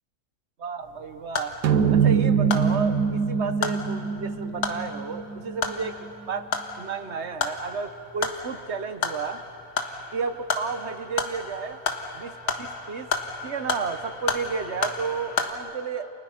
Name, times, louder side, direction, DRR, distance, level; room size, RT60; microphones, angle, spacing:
voice 1, 0.6-1.5 1.9-5.9 6.3-6.5 6.8-9.4 10.1-11.8 12.1-13.1 13.4-16.1, right 5 dB, 50° right, 10 dB, 1.1 m, -32 dB
sound 1, 0.8-15.5, left 5 dB, 70° left, 1.9 m, -33 dB
sound 2, 1.6-6.2, right 6 dB, 90° right, 1.5 m, -24 dB
29.5 x 29.0 x 5.8 m, 2.8 s
omnidirectional pair, 1.7 m